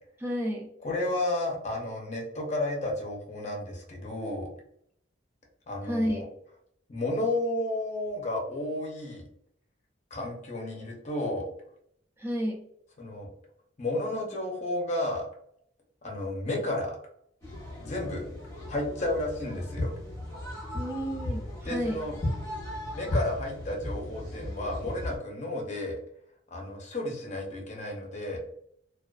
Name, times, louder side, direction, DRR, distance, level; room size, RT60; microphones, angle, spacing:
voice 1, 0.2-0.7 5.8-6.2 12.2-12.6 20.7-22.0, equal, 10° right, 0 dB, 0.3 m, -31 dB
voice 2, 0.8-4.5 5.7-6.2 6.9-9.2 10.1-11.4 13.0-13.3 13.8-15.3 16.0-16.9 17.8-18.2 18.7-19.9 21.6-22.1 22.9-26.0 26.5-28.4, left 1 dB, 35° left, -1 dB, 0.6 m, -32 dB
sound 1, 17.4-25.2, left 1 dB, 15° left, 0.9 m, -36 dB
2.4 x 2.3 x 2.2 m, 0.70 s
head